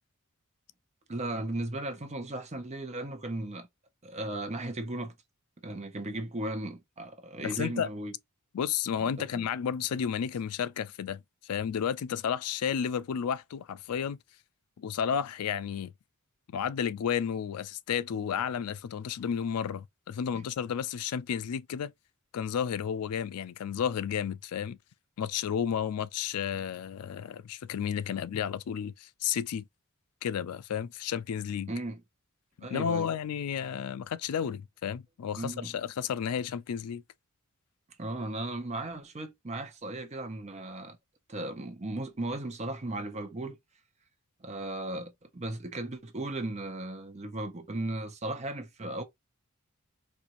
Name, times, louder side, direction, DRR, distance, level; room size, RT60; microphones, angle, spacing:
voice 1, 1.1-3.7 4.0-5.1 5.6-8.1 9.0-9.5 20.3-20.4 31.7-32.0 32.6-33.1 35.4-35.7 38.0-41.0 41.3-43.6 44.4-49.0, right 2 dB, 30° right, 0.8 m, -36 dB
voice 2, 7.4-7.9 8.5-14.2 14.8-15.9 16.5-21.9 22.3-24.8 25.2-29.6 30.2-31.7 32.6-37.0, left 8 dB, 80° left, 0.4 m, -32 dB
4.3 x 2.5 x 2.5 m
head